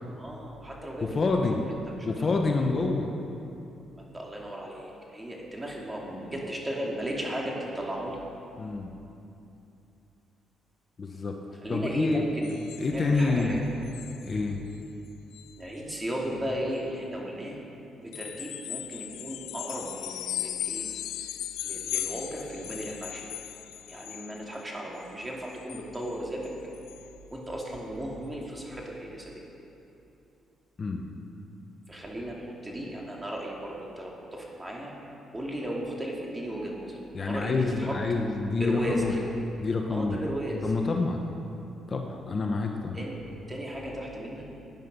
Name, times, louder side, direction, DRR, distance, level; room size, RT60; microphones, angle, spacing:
voice 1, 0.2-1.7 2.0-2.8 3.9-8.2 11.6-12.5 12.9-13.7 15.6-17.6 18.0-20.9 21.2-23.3 23.9-26.5 27.3-29.4 31.9-34.9 35.3-38.0 38.6-39.3 39.9-40.7 42.9-43.2 43.5-44.4, right 1 dB, 15° right, -2 dB, 2.8 m, -35 dB
voice 2, 1.0-1.6 2.0-3.1 8.6-8.9 11.0-11.4 11.7-12.3 12.8-13.6 14.2-14.6 30.8-31.1 37.1-39.1 39.6-40.2 40.6-41.2 41.9-43.0, left 3 dB, 40° left, 2 dB, 1.2 m, -27 dB
sound 1, 12.4-13.5 13.8-14.4 14.7-14.9 15.3-15.5 18.1-24.6 25.0-26.1 26.4-26.5 26.7-27.1 27.6-27.7, left 12 dB, 90° left, 0.5 m, -37 dB
16.5 x 9.9 x 5.4 m, 2.8 s
cardioid pair, 90°, 0 cm